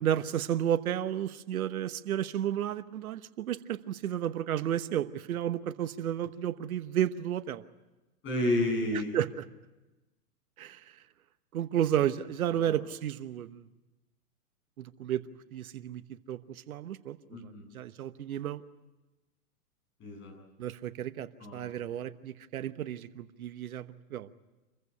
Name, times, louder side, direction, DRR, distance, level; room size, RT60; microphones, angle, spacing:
voice 1, 0.0-7.6 9.1-9.4 10.6-10.9 11.5-13.6 14.8-15.2 15.5-16.0 16.3-18.6 20.6-24.3, right 10 dB, 70° right, 12 dB, 1.2 m, -32 dB
voice 2, 8.2-9.2 12.5-12.8 17.3-17.7 20.0-20.3 21.4-21.7, left 1 dB, 25° left, 1 dB, 7.9 m, -31 dB
26.5 x 15.0 x 9.9 m, 1.1 s
hypercardioid pair, 125°, 45 cm